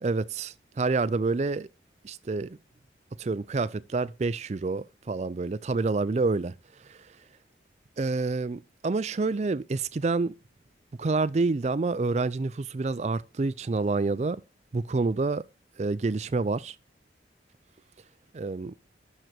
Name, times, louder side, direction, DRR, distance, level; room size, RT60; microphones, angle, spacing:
voice 1, 0.0-1.7 2.0-2.6 3.2-6.5 8.0-10.4 11.0-14.4 14.7-15.4 15.8-16.8 18.3-18.7, right 3 dB, 35° right, 0.4 m, -28 dB
6.6 x 4.6 x 5.9 m
head